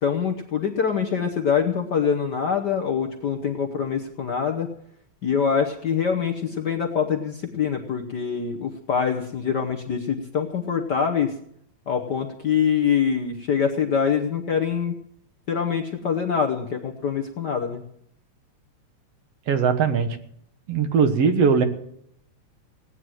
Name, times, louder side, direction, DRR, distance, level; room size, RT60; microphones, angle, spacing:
voice 1, 0.0-4.7 5.2-11.3 11.9-15.0 15.5-17.8, left 7 dB, 70° left, 3 dB, 1.0 m, -24 dB
voice 2, 19.5-20.2 20.7-21.7, right 6 dB, 60° right, 8 dB, 2.1 m, -20 dB
17.0 x 9.7 x 7.6 m, 0.71 s
omnidirectional pair, 3.3 m